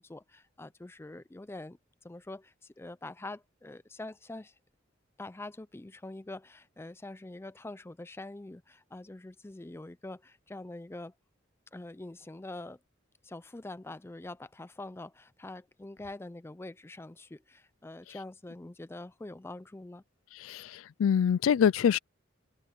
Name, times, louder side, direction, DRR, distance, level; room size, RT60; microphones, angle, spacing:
voice 1, 0.0-1.8 2.0-4.5 5.2-11.1 11.7-12.8 13.2-20.0, left 2 dB, 10° left, 0.4 m, -44 dB
voice 2, 20.4-22.0, left 8 dB, 80° left, 0.3 m, -25 dB
head